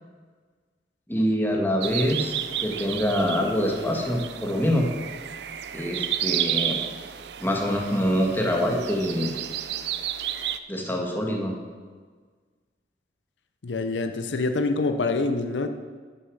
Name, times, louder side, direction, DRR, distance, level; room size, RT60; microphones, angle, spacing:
voice 1, 1.1-4.9 5.7-6.8 7.4-9.3 10.7-11.5, equal, 10° left, 0 dB, 1.5 m, -25 dB
sound 1, 1.8-10.6, right 11 dB, 65° right, 0.5 m, -32 dB
voice 2, 13.6-15.7, left 3 dB, 80° left, 8 dB, 0.7 m, -26 dB
9.5 x 6.7 x 6.2 m, 1.5 s
head